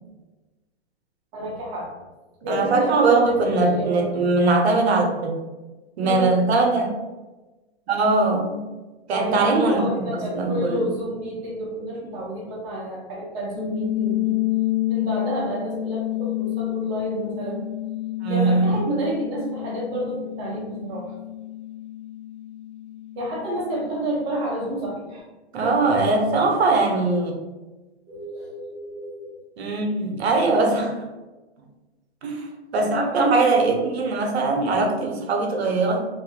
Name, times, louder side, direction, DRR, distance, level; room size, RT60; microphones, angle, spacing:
voice 1, 1.3-1.9 2.4-4.1 6.0-6.4 9.1-14.3 14.9-17.7 18.3-21.1 23.1-25.2 25.6-25.8 28.1-29.4 32.9-34.0, right 1 dB, 20° right, -3 dB, 0.6 m, -30 dB
voice 2, 2.5-5.4 6.0-6.9 7.9-8.6 9.1-10.8 18.2-18.8 25.5-27.3 29.6-31.0 32.2-32.5 32.7-36.1, right 3 dB, 70° right, 2 dB, 0.7 m, -21 dB
sound 1, 13.5-24.4, left 14 dB, 75° left, 0.7 m, -29 dB
2.6 x 2.4 x 2.7 m, 1.2 s
hypercardioid pair, 150°, 33 cm